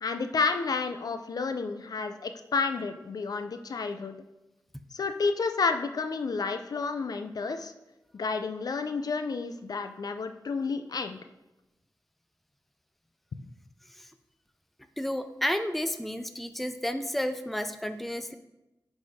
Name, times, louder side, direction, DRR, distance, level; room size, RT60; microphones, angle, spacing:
voice 1, 0.0-4.2 4.9-7.7 8.1-11.2, left 4 dB, 65° left, 8 dB, 0.4 m, -30 dB
voice 2, 15.0-18.3, equal, ahead, 9 dB, 0.4 m, -31 dB
10.0 x 4.2 x 3.5 m, 0.99 s
wide cardioid pair, 120°, 7 cm